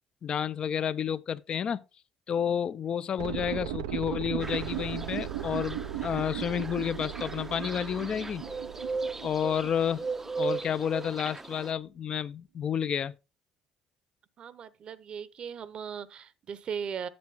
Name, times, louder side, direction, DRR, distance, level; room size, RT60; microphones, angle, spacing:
voice 1, 0.2-1.8 2.3-8.4 9.2-10.1 10.4-13.1, left 8 dB, 45° left, 0.5 m, -30 dB
sound 1, 3.2-11.0 11.3-11.4, right 11 dB, 85° right, 0.4 m, -37 dB
sound 2, 4.4-11.7, right 4 dB, 15° right, 0.5 m, -38 dB
voice 2, 14.4-17.1, right 7 dB, 50° right, 0.8 m, -38 dB
7.8 x 7.2 x 3.5 m
supercardioid pair, 70°, 2 cm